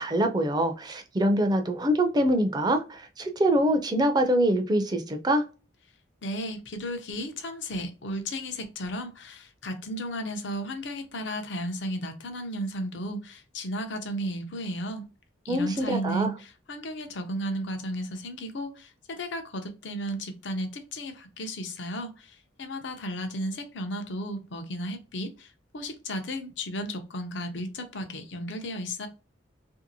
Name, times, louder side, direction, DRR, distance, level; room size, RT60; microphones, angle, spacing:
voice 1, 0.0-5.4 15.5-16.3, right 1 dB, 20° right, 0.4 m, -24 dB
voice 2, 6.2-15.1 15.4-29.1, equal, 70° left, 0.6 m, -34 dB
2.9 x 2.7 x 2.7 m
head